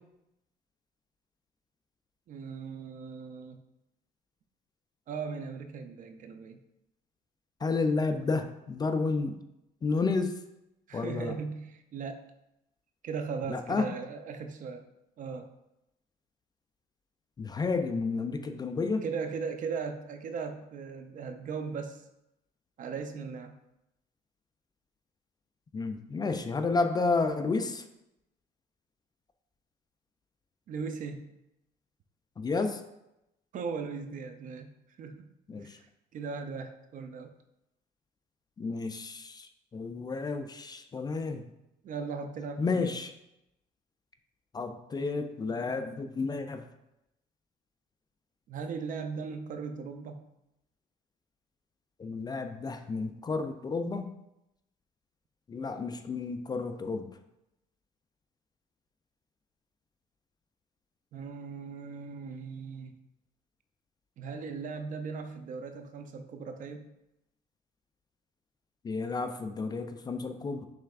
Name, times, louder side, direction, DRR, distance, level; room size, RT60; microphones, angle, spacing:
voice 1, 2.3-3.6 5.1-6.6 10.9-12.2 13.0-14.8 15.2-15.5 19.0-22.0 22.8-23.5 30.7-31.3 33.5-34.7 35.0-35.3 35.6-35.9 36.1-37.3 41.8-42.9 48.5-50.3 61.1-62.9 64.2-66.9, right 5 dB, 50° right, 7 dB, 0.5 m, -38 dB
voice 2, 7.6-9.4 9.8-10.4 10.9-11.3 13.4-13.9 17.4-19.1 25.7-27.8 32.4-32.8 35.5-35.8 38.6-41.4 42.6-43.1 44.5-46.7 52.0-54.1 55.5-57.1 68.8-70.7, left 4 dB, 25° left, 7 dB, 0.3 m, -31 dB
6.5 x 3.3 x 2.4 m, 0.88 s
cardioid pair, 110°, 17 cm